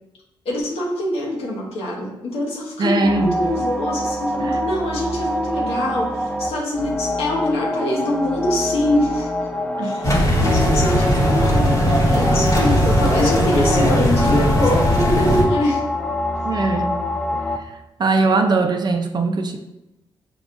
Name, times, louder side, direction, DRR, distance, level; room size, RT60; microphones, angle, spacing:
voice 1, 0.4-9.3 9.8-10.1 10.3-15.8, left 1 dB, 85° left, -2 dB, 1.0 m, -24 dB
voice 2, 2.8-3.4 4.4-4.6 9.8-10.0 16.4-16.9 17.3-17.4 18.0-19.6, right 3 dB, 45° right, 5 dB, 0.5 m, -20 dB
sound 1, 3.0-17.6, equal, 5° left, 0.4 m, -25 dB
sound 2, 10.0-15.4, equal, 35° left, 1.0 m, -18 dB
6.0 x 2.3 x 2.5 m, 0.91 s
cardioid pair, 70°, 10 cm